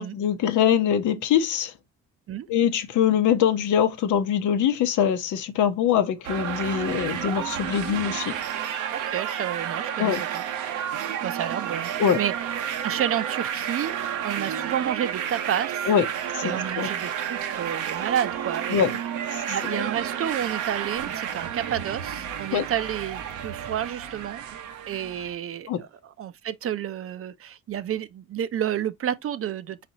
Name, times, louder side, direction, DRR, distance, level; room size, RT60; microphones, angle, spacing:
voice 1, 0.0-1.7 2.5-8.3 10.0-10.2 12.0-12.2 15.9-16.0 16.3-16.9 18.7-18.9 19.3-19.8 22.5-22.6 25.7-25.8, left 9 dB, 80° left, 0.8 m, -23 dB
sound 1, 6.2-25.3, right 9 dB, 85° right, 0.8 m, -31 dB
voice 2, 8.9-10.4 11.2-13.9 14.2-15.9 16.4-18.8 19.5-24.4 24.9-29.9, right 10 dB, 50° right, 0.5 m, -30 dB
4.2 x 4.1 x 2.8 m
cardioid pair, 90°, 30 cm